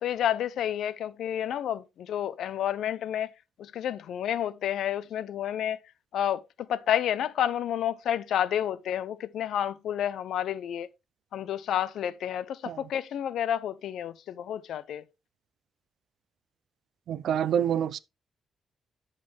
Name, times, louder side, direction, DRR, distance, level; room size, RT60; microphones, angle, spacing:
voice 1, 0.0-3.3 3.6-5.8 6.1-6.4 6.7-10.9 11.3-15.0, left 10 dB, 80° left, 0.6 m, -30 dB
voice 2, 17.1-18.0, right 9 dB, 75° right, 0.5 m, -27 dB
9.4 x 6.6 x 3.5 m
wide cardioid pair, 160°, 0 cm